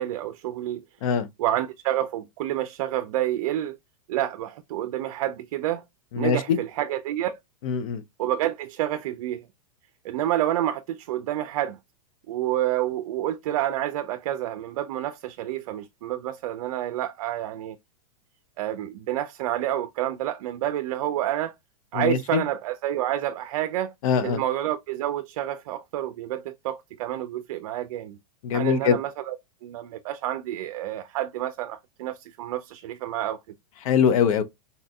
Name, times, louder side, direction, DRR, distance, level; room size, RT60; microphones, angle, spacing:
voice 1, 0.0-0.8 1.4-3.8 4.1-5.8 6.2-7.4 8.2-9.5 10.0-11.8 12.3-17.8 18.6-21.5 21.9-23.9 24.2-28.2 28.5-29.4 29.6-33.4, right 13 dB, 65° right, 0.4 m, -29 dB
voice 2, 6.1-6.6 7.6-8.0 22.0-22.4 24.0-24.4 28.4-29.0 33.9-34.4, left 7 dB, 65° left, 0.6 m, -22 dB
4.1 x 2.5 x 2.2 m
supercardioid pair, 145°, 19 cm